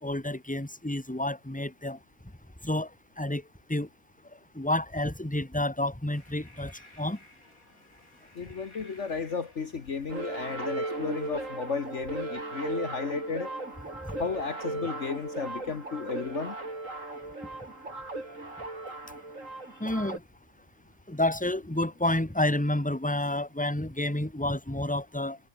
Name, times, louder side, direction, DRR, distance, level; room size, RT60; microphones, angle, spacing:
voice 1, 0.0-2.0 2.6-2.9 3.2-3.4 3.7-3.9 4.5-6.7 7.0-7.2 14.0-14.3 19.8-20.2 21.1-25.4, left 1 dB, 5° left, 2.5 m, -29 dB
sound 1, 6.1-11.8, left 1 dB, 70° left, 8.4 m, -57 dB
voice 2, 8.4-13.5 14.2-16.6, left 5 dB, 55° left, 1.7 m, -34 dB
sound 2, 10.1-20.2, right 2 dB, 60° right, 5.4 m, -37 dB
omnidirectional pair, 1.5 m